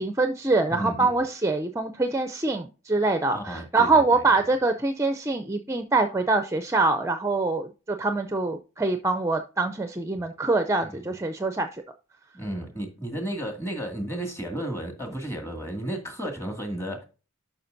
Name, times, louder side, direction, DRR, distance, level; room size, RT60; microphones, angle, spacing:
voice 1, 0.0-11.8, right 3 dB, 15° right, 0.5 m, -24 dB
voice 2, 0.7-1.2 3.3-4.3 10.8-11.1 12.3-17.0, right 1 dB, 15° left, 2.1 m, -33 dB
11.0 x 5.8 x 2.6 m
head